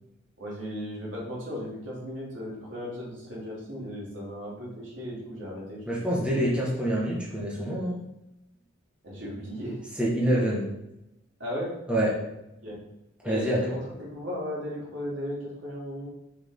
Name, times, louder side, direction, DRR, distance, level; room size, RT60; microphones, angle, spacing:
voice 1, 0.4-6.4 9.0-9.8 11.4-11.7 12.6-12.8 13.2-16.1, equal, 70° right, -5 dB, 3.1 m, -36 dB
voice 2, 5.9-7.9 10.0-10.7 11.9-12.2 13.2-13.6, right 1 dB, 5° right, -6 dB, 1.8 m, -26 dB
7.0 x 6.6 x 3.9 m, 0.91 s
head